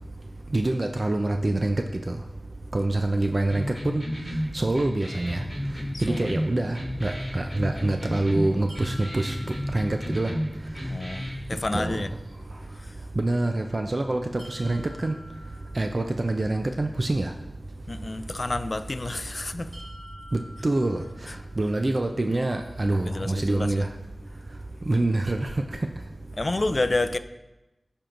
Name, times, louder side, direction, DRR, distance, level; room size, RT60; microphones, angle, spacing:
voice 1, 0.5-1.8 2.7-4.0 4.5-5.4 6.0-9.3 9.7-10.3 11.7-12.0 13.2-15.1 15.8-17.3 20.3-21.0 21.6-23.9 24.9-25.5, right 2 dB, 45° right, 0.4 m, -25 dB
sound 1, 3.5-11.5, equal, 10° left, 2.4 m, -32 dB
voice 2, 5.9-6.3 10.9-12.1 12.8-13.0 17.9-19.8 21.3-21.4 22.3-22.4 23.0-23.8 26.3-27.2, left 2 dB, 45° left, 0.3 m, -29 dB
sound 2, 8.7-10.6 14.4-16.5 19.7-21.8, equal, 80° right, 1.4 m, -49 dB
13.0 x 4.4 x 2.5 m
wide cardioid pair, 65°, 0 cm